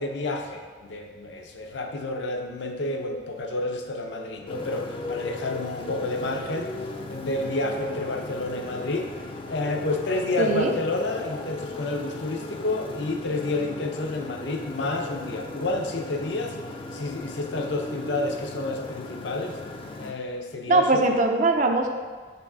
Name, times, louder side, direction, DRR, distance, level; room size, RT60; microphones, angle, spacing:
voice 1, 0.0-6.8 7.1-9.1 9.5-16.5 16.9-19.6 20.0-21.0, left 2 dB, 75° left, 3 dB, 0.6 m, -30 dB
Motorcycle, 4.5-20.1, left 2 dB, 30° left, 0.4 m, -37 dB
voice 2, 10.4-10.7 20.7-21.9, right 2 dB, 40° right, 3 dB, 0.5 m, -21 dB
6.0 x 3.3 x 4.7 m, 1.5 s
head